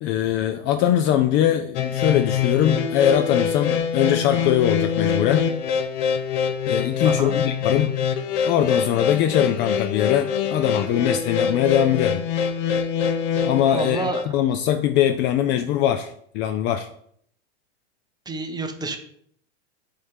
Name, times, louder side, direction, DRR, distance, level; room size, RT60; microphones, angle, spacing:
voice 1, 0.0-5.4 6.7-7.9 8.5-12.2 13.4-16.9, left 10 dB, 35° left, 9 dB, 0.4 m, -22 dB
sound 1, 1.7-14.2, left 7 dB, 55° left, 0.8 m, -24 dB
voice 2, 7.0-7.4 13.7-14.4 18.3-19.0, right 3 dB, 10° right, 6 dB, 0.8 m, -29 dB
5.1 x 3.3 x 5.6 m, 0.66 s
hypercardioid pair, 105°, 34 cm